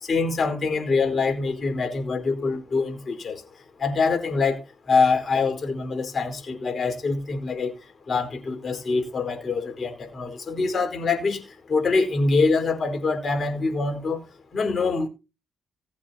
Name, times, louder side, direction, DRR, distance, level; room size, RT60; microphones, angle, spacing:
voice 1, 0.0-3.4 3.8-4.6 4.9-7.7 8.1-11.4 11.7-14.2 14.5-15.1, left 4 dB, 45° left, 4.6 m, -24 dB
19.0 x 8.6 x 2.9 m
cardioid pair, 80°, 0 cm